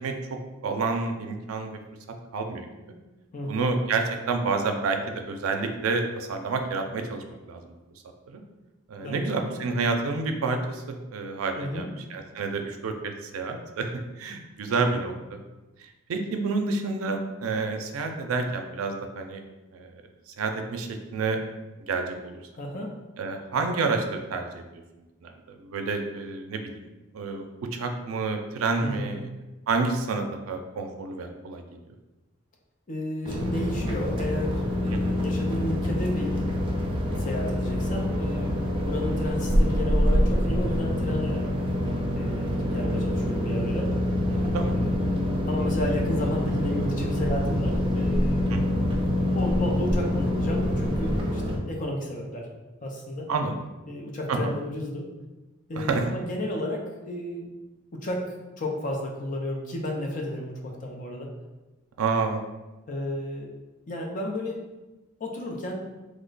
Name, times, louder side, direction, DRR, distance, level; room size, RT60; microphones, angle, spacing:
voice 1, 0.0-1.8 2.3-2.7 3.5-7.6 8.3-8.4 8.9-13.9 14.2-15.4 16.1-19.4 19.7-19.9 20.4-21.4 21.9-22.4 23.2-24.8 25.2-26.9 27.1-27.4 27.7-29.3 29.7-31.6 34.9-35.2 44.3-44.9 48.5-48.8 53.3-53.6 54.3-54.5 55.8-56.1 62.0-62.4, right 4 dB, 85° right, 5 dB, 0.4 m, -29 dB
voice 2, 3.3-3.7 9.0-9.9 11.6-11.9 14.7-14.8 22.5-22.9 28.8-29.2 32.9-36.3 37.1-41.4 42.1-43.9 44.7-45.2 45.5-48.5 49.0-52.5 52.8-53.3 53.9-55.1 55.7-57.5 57.9-58.2 58.6-61.3 62.9-63.5 63.9-64.6 65.2-65.8, left 1 dB, 40° left, 0 dB, 0.5 m, -33 dB
sound 1, 33.2-51.6, left 1 dB, 25° right, 0.4 m, -26 dB
3.1 x 2.1 x 3.8 m, 1.1 s
head